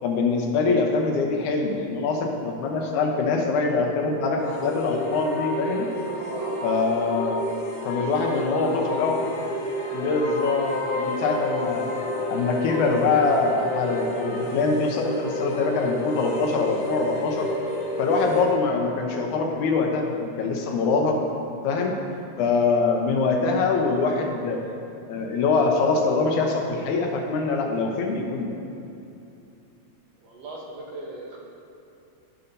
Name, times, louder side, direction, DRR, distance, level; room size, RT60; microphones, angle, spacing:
voice 1, 0.0-5.9 6.6-7.4 7.8-9.2 9.9-11.9 12.3-17.5 18.0-21.2 21.6-21.9 22.4-24.6 25.1-28.5, left 4 dB, 85° left, 2 dB, 2.3 m, -24 dB
sound 1, 4.4-18.6, left 1 dB, 60° left, 1.8 m, -30 dB
voice 2, 6.1-6.7 8.2-9.0 30.2-31.5, right 2 dB, 65° right, -2 dB, 2.0 m, -37 dB
15.0 x 5.8 x 2.7 m, 2.7 s
omnidirectional pair, 3.4 m